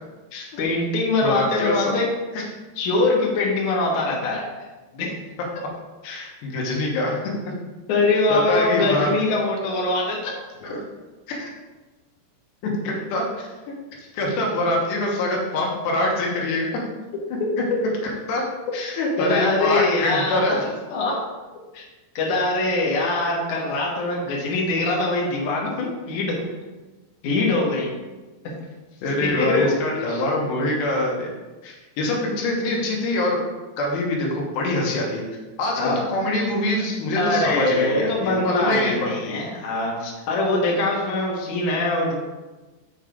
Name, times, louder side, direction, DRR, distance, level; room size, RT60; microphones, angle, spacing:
voice 1, 0.6-2.1 2.8-4.5 4.9-5.2 7.9-10.3 19.2-20.6 20.9-21.2 21.7-21.8 22.1-26.3 27.2-27.9 29.2-29.8 30.1-30.2 35.8-36.0 37.2-42.1, left 2 dB, 60° left, -2 dB, 2.5 m, -23 dB
voice 2, 1.2-1.9 2.3-2.4 6.0-7.5 8.3-9.1 10.6-10.8 11.3-11.5 12.6-13.5 14.0-16.8 18.3-18.5 18.7-20.6 29.0-31.3 31.6-33.4 33.8-35.2 35.6-39.4, left 1 dB, 85° left, -1 dB, 3.4 m, -24 dB
6.4 x 5.4 x 5.1 m, 1.2 s
omnidirectional pair, 4.7 m